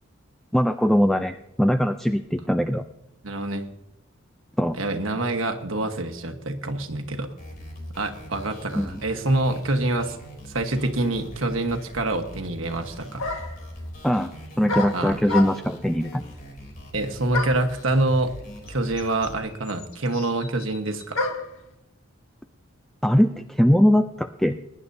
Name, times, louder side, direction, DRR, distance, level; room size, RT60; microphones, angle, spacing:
voice 1, 0.5-2.8 4.6-4.8 8.7-9.0 14.0-16.2 23.0-24.6, equal, ahead, 7 dB, 0.4 m, -21 dB
voice 2, 3.2-3.6 4.7-7.3 7.9-10.2 10.5-13.2 14.9-15.2 16.9-18.3 18.7-21.3, right 2 dB, 70° right, 5 dB, 1.3 m, -26 dB
sound 1, 7.4-19.4, equal, 45° left, 3.2 m, -42 dB
sound 2, 13.2-13.7 14.7-15.8 17.3-17.7 18.7-18.8 19.0-21.6, left 3 dB, 85° left, 1.8 m, -30 dB
21.5 x 10.5 x 2.7 m, 0.82 s
head